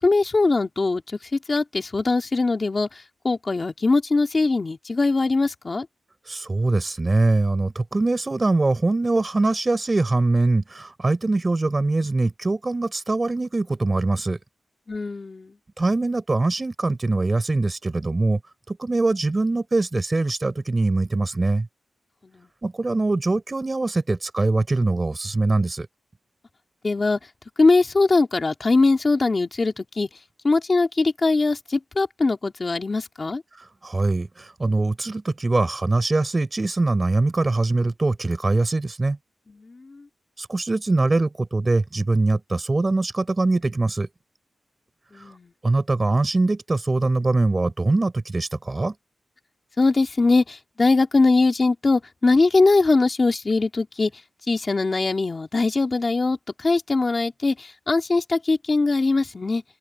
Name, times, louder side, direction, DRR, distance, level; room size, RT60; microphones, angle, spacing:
voice 1, 0.0-5.9 14.9-15.6 22.2-22.5 26.8-27.2 27.6-30.1 30.4-33.4 39.5-40.0 45.1-45.5 49.8-54.1 54.5-59.6, left 3 dB, 30° left, 3.1 m, -21 dB
voice 2, 6.3-14.4 15.8-18.4 18.7-21.7 22.6-25.9 33.5-39.2 40.4-44.1 45.6-48.9, right 2 dB, 25° right, 4.8 m, -22 dB
open air
wide cardioid pair, 160°, 0 cm